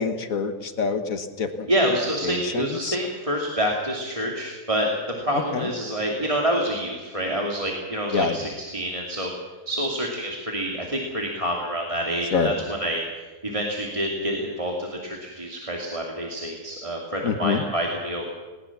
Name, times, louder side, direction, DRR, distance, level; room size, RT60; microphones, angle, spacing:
voice 1, 0.0-1.7 2.2-2.9 5.5-5.7 8.1-8.4 12.3-12.5 17.2-17.6, left 5 dB, 60° left, 8 dB, 1.7 m, -26 dB
voice 2, 1.7-4.9 5.2-9.3 9.7-13.0 13.4-18.3, equal, 20° right, -1 dB, 2.6 m, -27 dB
20.0 x 19.5 x 7.2 m, 1.3 s
omnidirectional pair, 1.7 m